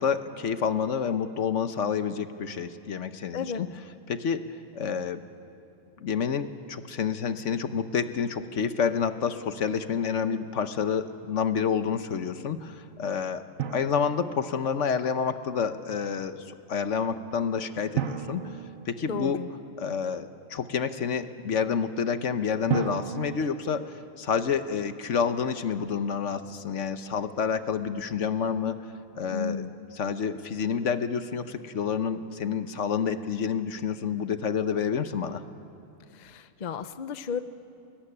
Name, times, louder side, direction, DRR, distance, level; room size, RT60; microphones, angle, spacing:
voice 1, 0.0-3.7 4.1-4.5 4.7-5.2 6.0-13.4 13.7-18.6 18.9-19.4 19.8-28.8 29.1-29.6 30.0-35.4, left 6 dB, 65° left, 10 dB, 1.3 m, -29 dB
Drum, 13.6-15.1 18.0-19.8 22.7-24.3, right 8 dB, 80° right, 1.3 m, -35 dB
voice 2, 19.1-19.5 29.3-29.7 36.1-37.4, left 5 dB, 40° left, 11 dB, 0.7 m, -33 dB
25.0 x 21.0 x 10.0 m, 2.6 s
omnidirectional pair, 1.4 m